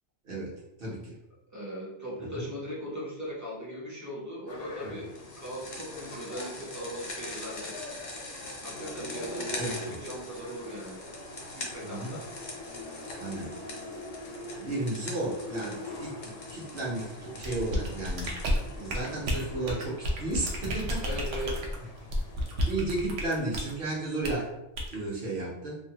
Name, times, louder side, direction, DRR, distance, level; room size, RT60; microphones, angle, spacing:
voice 1, 0.8-1.1 2.3-2.4 4.8-5.0 9.6-10.0 11.8-12.2 13.2-13.5 14.6-18.3 18.7-21.2 22.7-24.5 24.9-25.8, right 2 dB, 55° right, -5 dB, 1.0 m, -33 dB
voice 2, 1.5-7.8 8.6-11.0 11.6-12.3 21.0-21.6, equal, 25° right, -5 dB, 0.4 m, -39 dB
sound 1, 4.5-22.7, left 2 dB, 85° left, 1.0 m, -44 dB
sound 2, 5.1-19.5, left 2 dB, 50° left, 0.6 m, -43 dB
sound 3, 17.4-23.7 24.2-24.4 24.8-25.0, equal, 85° right, 0.9 m, -31 dB
2.7 x 2.2 x 2.7 m, 0.90 s
omnidirectional pair, 1.2 m